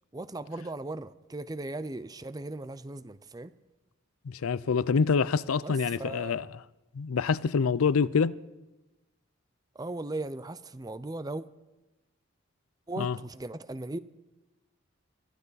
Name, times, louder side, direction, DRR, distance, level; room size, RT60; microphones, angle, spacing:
voice 1, 0.1-3.5 5.6-6.3 9.8-11.4 12.9-14.0, right 2 dB, 20° right, 0.5 m, -37 dB
voice 2, 4.2-6.6 6.9-8.4 13.0-13.2, left 5 dB, 80° left, 0.5 m, -26 dB
23.5 x 14.5 x 4.1 m
head